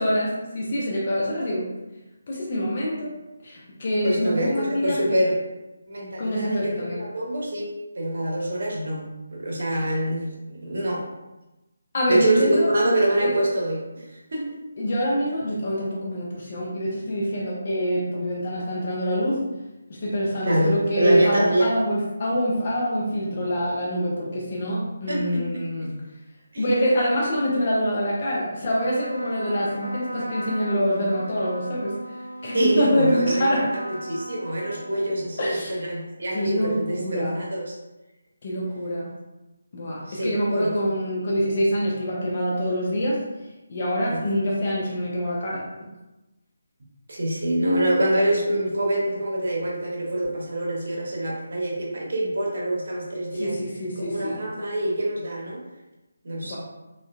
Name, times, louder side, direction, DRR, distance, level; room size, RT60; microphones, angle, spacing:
voice 1, 0.0-1.7 2.3-3.1 3.4-5.2 6.2-7.0 9.7-9.9 11.9-12.7 13.2-13.3 14.8-19.5 19.9-26.0 26.6-32.0 32.4-33.7 35.4-35.8 36.3-37.4 38.4-39.1 39.7-43.2 43.7-45.7 53.3-54.4 56.4-56.6, equal, 40° left, -4 dB, 0.5 m, -25 dB
voice 2, 4.0-5.4 5.9-11.1 12.1-14.5 20.4-21.7 25.1-25.5 26.5-26.7 32.5-37.7 40.1-40.7 44.1-44.3 47.1-53.6 54.0-55.6 56.2-56.6, right 1 dB, 50° right, -3 dB, 0.8 m, -25 dB
Trumpet, 28.7-35.5, equal, 85° right, 0.4 m, -38 dB
3.5 x 2.2 x 2.2 m, 1.0 s
figure-of-eight pair, 150°, 0 cm